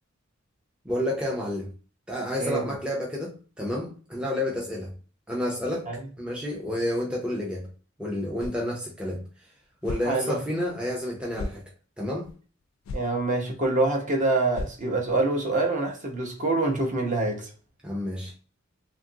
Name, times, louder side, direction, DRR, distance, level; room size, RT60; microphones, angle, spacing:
voice 1, 0.8-1.7 2.1-4.9 5.3-5.9 6.2-7.7 8.0-9.2 9.8-11.6 12.0-12.3 17.8-18.3, left 1 dB, 5° right, 0.4 m, -30 dB
voice 2, 2.4-2.7 5.9-6.0 10.0-10.4 12.9-17.5, right 2 dB, 40° right, 0.7 m, -26 dB
sound 1, 8.4-8.7 9.1-9.2 9.8-10.1 10.6-10.7 11.3-11.6 12.2-12.3 12.8-13.1 13.5-13.6 13.9-14.0 14.5-15.1, left 2 dB, 85° left, 0.4 m, -35 dB
2.8 x 2.4 x 2.6 m
head